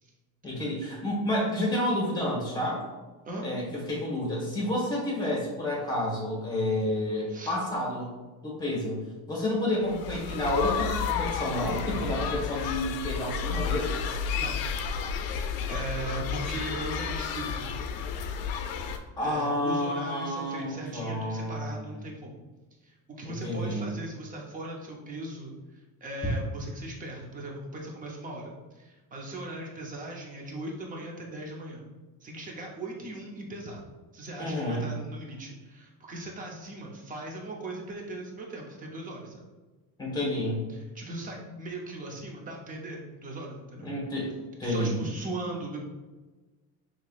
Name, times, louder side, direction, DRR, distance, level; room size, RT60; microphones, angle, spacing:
voice 1, 0.4-2.9 3.4-8.1 8.4-9.0 9.3-14.0 19.2-21.8 23.2-23.9 34.4-34.9 40.0-40.6 43.8-44.3 44.6-45.0, left 1 dB, 10° left, -3 dB, 1.2 m, -30 dB
School big break, 9.9-19.0, left 6 dB, 75° left, 0.5 m, -31 dB
voice 2, 15.3-17.7 18.9-22.4 22.8-31.8 32.2-33.8 34.1-39.4 40.7-43.9 44.6-45.8, right 1 dB, 25° right, -1 dB, 0.7 m, -39 dB
5.6 x 3.1 x 2.4 m, 1.2 s
cardioid pair, 165°, 36 cm